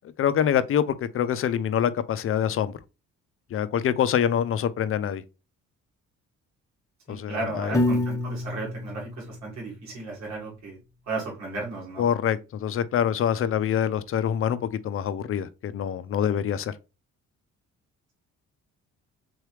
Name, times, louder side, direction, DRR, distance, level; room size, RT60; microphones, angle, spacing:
voice 1, 0.2-2.7 3.5-5.2 7.1-7.8 12.0-14.6 14.8-16.7, left 9 dB, 45° left, 0.4 m, -25 dB
voice 2, 7.1-10.8 11.1-12.1, right 3 dB, 65° right, 2.0 m, -34 dB
Piano, 7.7-10.0, left 1 dB, 10° left, 0.7 m, -28 dB
3.8 x 3.2 x 3.1 m
cardioid pair, 90°, 30 cm